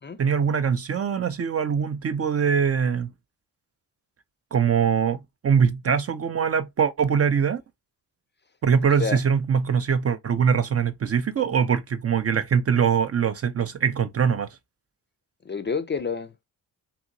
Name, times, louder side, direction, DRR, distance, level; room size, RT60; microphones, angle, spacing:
voice 1, 0.2-3.1 4.5-7.6 8.6-14.5, right 7 dB, 35° right, 0.5 m, -22 dB
voice 2, 15.4-16.5, left 5 dB, 25° left, 0.4 m, -29 dB
2.8 x 2.7 x 2.6 m
supercardioid pair, 45°, 44 cm